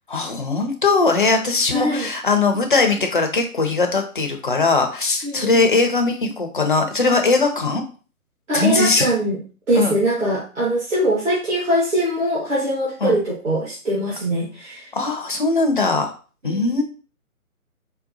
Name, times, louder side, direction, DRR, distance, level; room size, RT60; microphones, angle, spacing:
voice 1, 0.1-7.8 8.5-9.1 9.8-9.9 13.0-13.1 14.9-16.1 16.4-16.8, left 3 dB, 35° left, 4 dB, 0.5 m, -20 dB
voice 2, 1.7-2.1 5.2-5.7 8.5-9.4 9.7-14.9 16.4-16.8, right 1 dB, 55° right, -8 dB, 1.6 m, -22 dB
4.7 x 2.1 x 2.6 m, 0.37 s
figure-of-eight pair, 145°, 43 cm